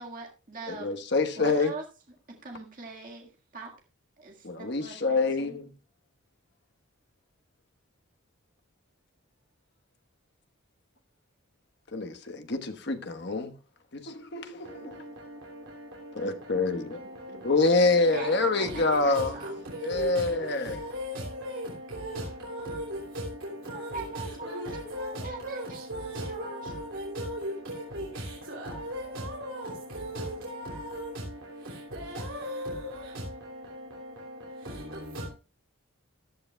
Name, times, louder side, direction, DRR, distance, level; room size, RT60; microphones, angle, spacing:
voice 1, 0.0-1.0 1.4-1.8 2.3-3.8 4.2-5.6 17.0-17.4 17.8-19.5 23.7-25.8 26.1-26.7 33.1-33.2, right 3 dB, 40° right, 1.8 m, -42 dB
voice 2, 0.7-1.7 4.4-5.7 11.9-13.5 13.9-15.0 16.1-17.0 17.4-19.4 19.8-20.8, left 3 dB, 55° left, 1.2 m, -26 dB
voice 3, 14.6-35.3, equal, 70° right, 3.1 m, -38 dB
14.5 x 12.0 x 2.2 m
head